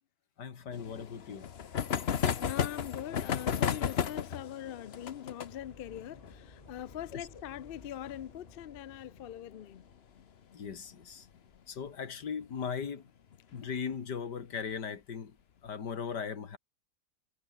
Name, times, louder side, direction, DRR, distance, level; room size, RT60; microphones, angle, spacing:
voice 1, 0.4-1.5 7.1-7.3 10.5-11.3 11.7-13.0 13.5-15.4 15.6-16.6, left 6 dB, 85° left, 2.5 m, -38 dB
sound 1, 0.7-9.9 10.2-10.3 10.5-10.6 10.9-11.0 12.4-12.7 13.3-13.8, left 8 dB, 45° left, 1.0 m, -35 dB
voice 2, 2.4-9.8, left 11 dB, 70° left, 0.5 m, -42 dB
sound 2, 5.1-10.3, left 2 dB, 25° left, 2.6 m, -57 dB
omnidirectional pair, 1.8 m